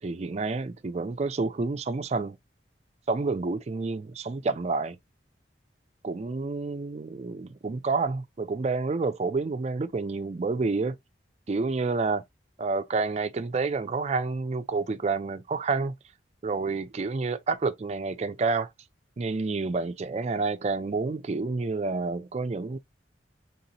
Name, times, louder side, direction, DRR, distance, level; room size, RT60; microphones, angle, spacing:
voice 1, 0.0-2.4 3.1-5.0 6.0-11.0 11.5-12.2 12.6-15.9 16.4-18.7 19.2-22.8, right 3 dB, 35° right, 0.4 m, -29 dB
4.0 x 3.6 x 2.8 m
head